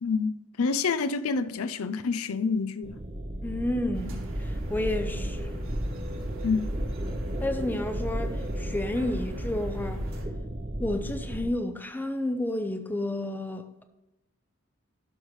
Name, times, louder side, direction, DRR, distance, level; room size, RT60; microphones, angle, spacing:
voice 1, 0.0-3.0 6.4-6.7, left 4 dB, 80° left, 0.5 m, -28 dB
sound 1, 2.8-11.5, right 1 dB, 25° right, 0.8 m, -34 dB
voice 2, 3.4-5.6 7.4-10.0 10.8-13.8, left 1 dB, 10° left, 0.6 m, -31 dB
sound 2, 3.9-10.3, equal, 65° right, 1.8 m, -39 dB
12.5 x 5.6 x 3.2 m
head